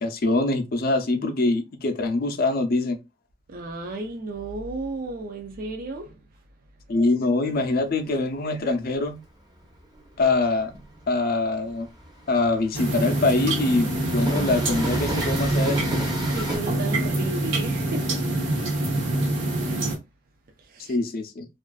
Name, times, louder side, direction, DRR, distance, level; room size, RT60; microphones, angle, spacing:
voice 1, 0.0-3.0 6.9-9.2 10.2-10.7 11.1-11.9 12.3-15.9 20.9-21.5, left 2 dB, 55° left, 0.5 m, -24 dB
voice 2, 3.5-6.2 16.2-18.2 20.6-21.0, right 2 dB, 50° right, 0.4 m, -34 dB
Train, 7.5-16.6, right 1 dB, 20° right, 0.7 m, -34 dB
sound 1, 12.7-20.0, right 2 dB, 80° right, 0.8 m, -25 dB
2.4 x 2.3 x 2.3 m
head